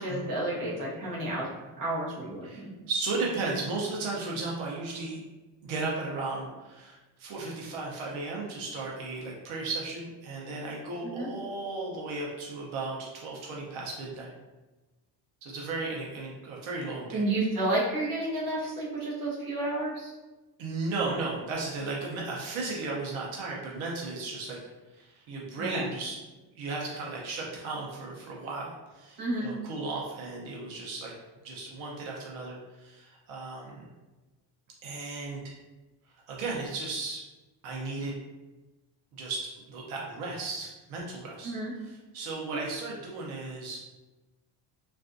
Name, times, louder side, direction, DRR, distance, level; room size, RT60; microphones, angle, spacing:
voice 1, 0.0-1.5 1.8-2.7 11.0-11.3 17.1-20.1 25.6-25.8 29.2-29.5 41.4-41.7 42.5-42.6, right 2 dB, 45° right, -5 dB, 1.0 m, -31 dB
voice 2, 2.4-5.2 5.6-14.3 15.4-17.2 20.6-24.6 24.9-26.2 26.5-31.1 31.4-33.9 34.8-35.4 36.3-37.2 37.6-38.1 39.2-41.5 41.8-43.8, right 3 dB, 85° right, -3 dB, 0.8 m, -35 dB
3.3 x 2.5 x 2.5 m, 1.1 s
cardioid pair, 165°, 46 cm